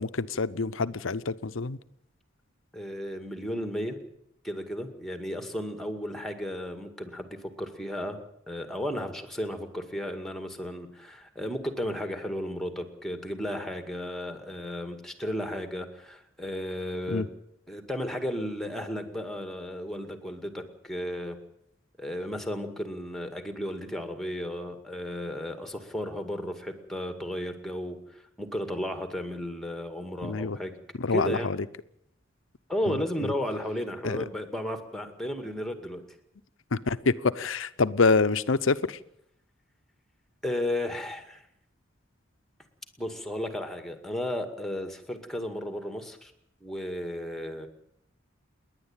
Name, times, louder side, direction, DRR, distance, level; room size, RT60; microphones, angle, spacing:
voice 1, 0.0-1.8 17.1-17.3 30.2-30.6 31.0-31.6 32.9-33.3 34.0-34.2 36.7-39.0, left 4 dB, 75° left, 14 dB, 0.8 m, -26 dB
voice 2, 2.7-4.0 4.4-8.2 8.5-17.3 17.7-21.4 22.0-28.0 28.4-30.8 31.1-31.5 32.7-36.0 40.4-41.4 43.0-46.3 46.6-47.7, left 1 dB, ahead, 7 dB, 2.1 m, -34 dB
28.5 x 11.0 x 9.0 m, 0.76 s
head